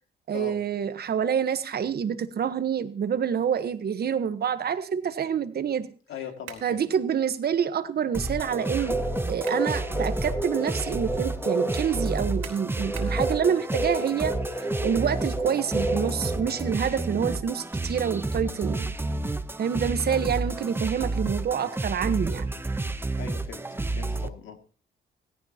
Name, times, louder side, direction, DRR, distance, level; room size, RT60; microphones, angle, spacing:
voice 1, 0.3-5.9 6.6-9.0 9.3-14.4 14.8-18.9 19.6-22.5, right 8 dB, 55° right, 11 dB, 1.2 m, -27 dB
voice 2, 6.1-6.8 17.2-17.4 20.1-20.2 23.2-23.6 23.9-24.6, left 7 dB, 75° left, 5 dB, 2.3 m, -39 dB
sound 1, 6.5-6.8 9.1-9.7 10.2-10.3 12.4-13.2, right 10 dB, 80° right, 3.2 m, -43 dB
sound 2, 8.1-24.3, right 2 dB, 10° right, 0.8 m, -31 dB
sound 3, 8.4-16.8, right 1 dB, 15° left, 2.2 m, -31 dB
17.0 x 16.0 x 2.9 m, 0.40 s
cardioid pair, 90°, 20 cm